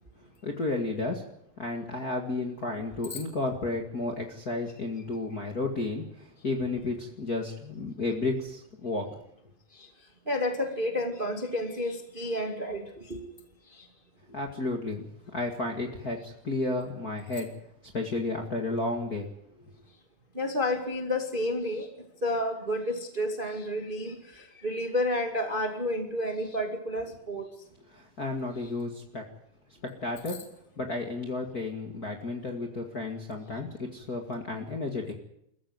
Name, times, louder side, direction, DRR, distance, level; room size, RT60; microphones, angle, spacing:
voice 1, 0.4-1.2 1.6-9.2 14.3-17.5 17.9-19.3 27.9-29.2 29.8-30.4 30.8-35.1, left 2 dB, 30° left, 2 dB, 1.9 m, -32 dB
voice 2, 10.3-13.2 13.8-13.9 20.3-21.9 22.2-27.5, left 1 dB, 20° right, 4 dB, 1.8 m, -30 dB
22.5 x 15.0 x 9.5 m, 0.74 s
omnidirectional pair, 4.2 m